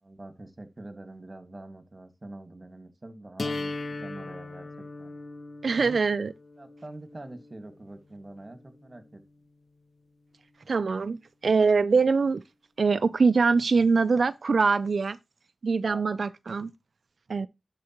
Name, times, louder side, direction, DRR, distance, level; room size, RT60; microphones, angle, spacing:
voice 1, 0.0-3.7 4.0-5.1 5.8-6.0 6.6-9.2 15.8-16.0, right 2 dB, 40° right, 1.5 m, -44 dB
sound 1, 3.4-9.4, left 3 dB, 65° left, 0.7 m, -39 dB
voice 2, 5.6-6.3 10.7-12.4 12.8-15.2 15.6-16.7 17.3-17.5, right 4 dB, 75° right, 0.3 m, -23 dB
11.0 x 4.6 x 2.9 m
cardioid pair, 45°, 0 cm